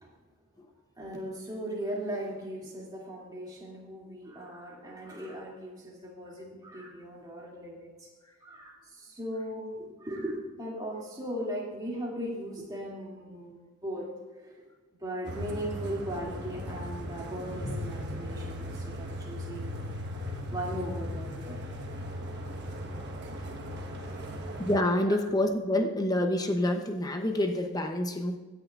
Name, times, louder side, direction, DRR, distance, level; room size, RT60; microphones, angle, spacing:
voice 1, 1.0-7.9 8.4-14.1 14.4-14.7 15.0-19.8 20.5-21.7 22.2-22.5 24.0-24.2 25.0-25.2, equal, 15° right, -4 dB, 2.5 m, -38 dB
sound 1, 15.2-24.8, equal, 50° right, 1.3 m, -37 dB
voice 2, 24.6-28.4, left 1 dB, 15° left, 5 dB, 0.7 m, -27 dB
16.5 x 10.0 x 2.5 m, 1.3 s
head